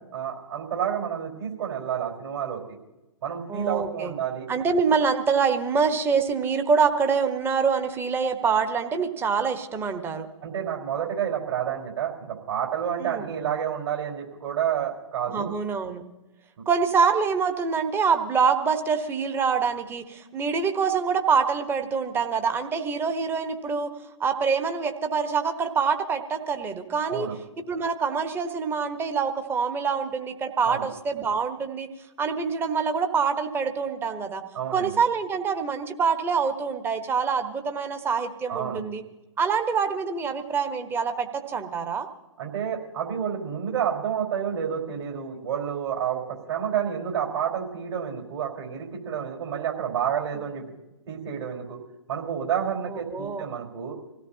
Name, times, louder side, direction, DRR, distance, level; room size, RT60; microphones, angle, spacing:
voice 1, 0.1-2.8 3.2-4.5 10.4-15.5 27.1-27.4 30.6-30.9 34.5-35.0 38.5-38.8 42.4-50.6 51.1-51.8 52.1-54.0, right 8 dB, 55° right, -1 dB, 4.5 m, -29 dB
voice 2, 3.5-4.1 4.5-10.3 13.0-13.3 15.3-16.0 16.7-23.9 24.2-27.3 27.7-31.9 32.2-34.4 34.7-39.0 39.4-42.1 52.9-53.5, right 5 dB, 15° right, 6 dB, 1.2 m, -25 dB
26.5 x 16.5 x 2.9 m, 1.0 s
figure-of-eight pair, 120°, 17 cm